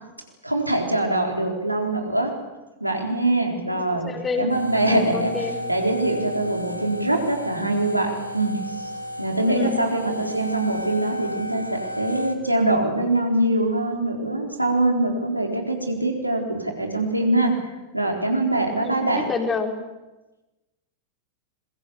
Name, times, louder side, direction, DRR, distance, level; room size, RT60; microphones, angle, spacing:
voice 1, 0.4-2.3 2.8-4.1 4.4-8.9 9.2-17.5 17.9-19.3, right 2 dB, 85° right, 2 dB, 4.1 m, -23 dB
voice 2, 3.7-4.5 4.9-5.6 9.5-9.8 18.8-19.7, left 4 dB, 20° left, 3 dB, 4.0 m, -28 dB
sound 1, 4.5-12.4, left 1 dB, 90° left, 2.1 m, -33 dB
26.0 x 22.5 x 7.1 m, 1.1 s
figure-of-eight pair, 90°, 0 cm